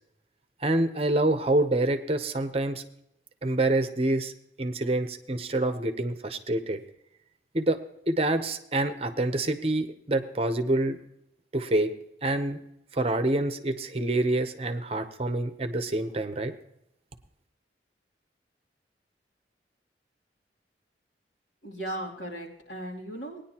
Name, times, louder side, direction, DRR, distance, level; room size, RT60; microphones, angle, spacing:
voice 1, 0.6-2.8 3.4-4.3 4.6-6.8 7.5-7.8 8.1-11.0 11.5-11.9 12.2-12.6 12.9-16.5, right 2 dB, 35° right, 9 dB, 0.8 m, -26 dB
voice 2, 21.6-23.4, right 1 dB, 80° left, -2 dB, 2.9 m, -37 dB
19.0 x 10.0 x 2.9 m, 0.77 s
head